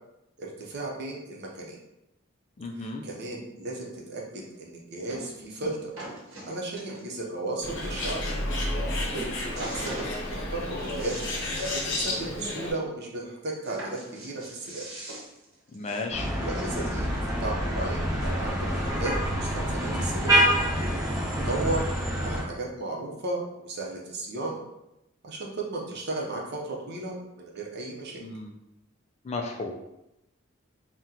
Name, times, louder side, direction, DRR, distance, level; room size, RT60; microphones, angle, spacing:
voice 1, 0.4-1.8 2.8-5.9 6.4-8.2 9.4-10.0 10.3-11.1 11.8-14.9 16.4-17.1 17.4-20.4 21.3-21.8 22.2-24.6 25.2-28.2, right 2 dB, 55° right, -1 dB, 0.7 m, -35 dB
voice 2, 2.6-3.1 15.7-16.3 28.2-28.5 29.2-29.8, left 3 dB, 35° left, 2 dB, 0.3 m, -34 dB
sound 1, 4.3-4.4 5.1-5.3 5.6-7.2 7.7-7.8 8.0-8.2 8.6-8.9 9.1-10.1 10.6-11.9 12.2-12.3 12.6-12.7 13.6-17.1 17.9-18.0, right 1 dB, 85° right, 0.8 m, -41 dB
Bird, 7.6-12.7, left 1 dB, 60° left, 0.7 m, -31 dB
sound 2, 16.1-22.4, equal, 15° right, 0.6 m, -26 dB
2.8 x 2.2 x 3.7 m, 0.90 s
head